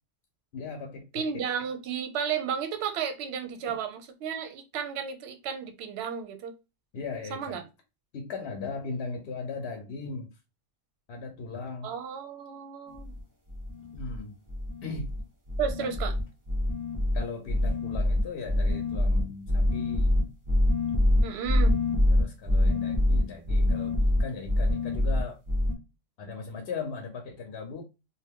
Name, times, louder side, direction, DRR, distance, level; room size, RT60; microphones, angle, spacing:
voice 1, 0.5-1.5 3.7-3.8 6.9-7.6 8.1-10.3 11.1-11.9 13.9-14.4 14.8-15.1 15.8-15.9 17.1-20.1 22.1-25.4 26.2-27.8, left 4 dB, 60° left, 0.8 m, -38 dB
voice 2, 1.1-6.5 7.3-7.6 11.8-13.1 15.6-16.1 21.2-21.8, right 7 dB, 65° right, 0.7 m, -33 dB
sound 1, 12.9-13.2 13.5-14.2 14.5-15.2 15.5-25.7, left 1 dB, 30° right, 0.3 m, -25 dB
2.5 x 2.2 x 3.4 m
omnidirectional pair, 1.3 m